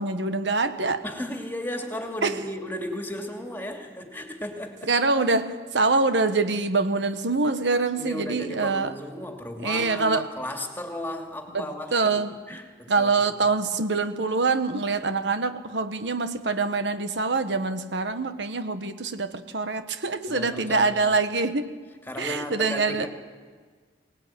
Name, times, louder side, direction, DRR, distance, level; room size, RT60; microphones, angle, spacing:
voice 1, 0.0-1.0 2.2-2.4 4.9-8.9 9.6-10.2 11.5-12.3 12.9-21.6 22.2-23.1, right 3 dB, 80° right, 10 dB, 1.3 m, -25 dB
voice 2, 1.0-4.9 8.0-12.2 12.5-13.1 20.3-21.1 22.1-23.1, left 1 dB, 10° left, 3 dB, 2.7 m, -35 dB
23.5 x 19.0 x 9.2 m, 1.5 s
head